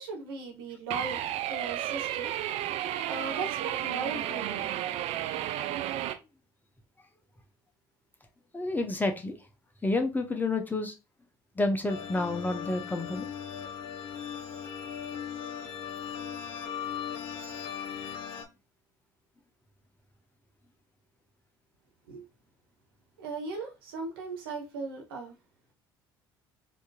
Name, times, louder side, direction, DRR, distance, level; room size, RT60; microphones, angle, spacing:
voice 1, 0.0-2.3 3.1-4.8 22.1-22.2 23.2-25.3, right 4 dB, 80° right, 1.0 m, -38 dB
sound 1, 0.9-6.1, right 12 dB, 60° right, 0.6 m, -32 dB
voice 2, 8.5-9.4 9.8-10.9 11.6-13.3, left 2 dB, 15° left, 1.0 m, -29 dB
sound 2, 11.9-18.4, left 8 dB, 60° left, 1.1 m, -38 dB
4.2 x 2.9 x 2.3 m
hypercardioid pair, 65°, 12 cm